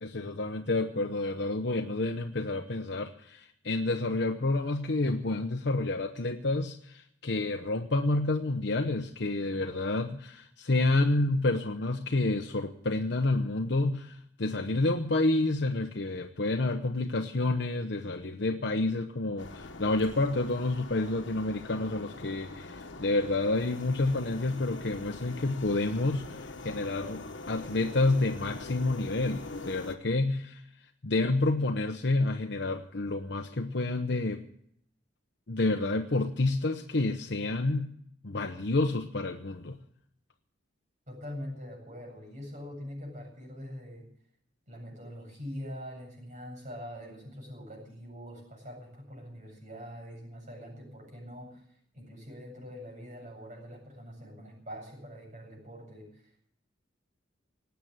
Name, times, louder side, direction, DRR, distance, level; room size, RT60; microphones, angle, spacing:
voice 1, 0.0-30.6 31.0-34.4 35.5-37.9 38.2-39.8, left 2 dB, 60° left, 4 dB, 0.9 m, -29 dB
sound 1, 19.4-30.0, left 3 dB, 80° left, 1.4 m, -43 dB
voice 2, 41.1-44.1 44.7-51.6 51.9-56.4, equal, 40° right, 0 dB, 8.0 m, -44 dB
19.0 x 8.3 x 8.9 m, 0.69 s
head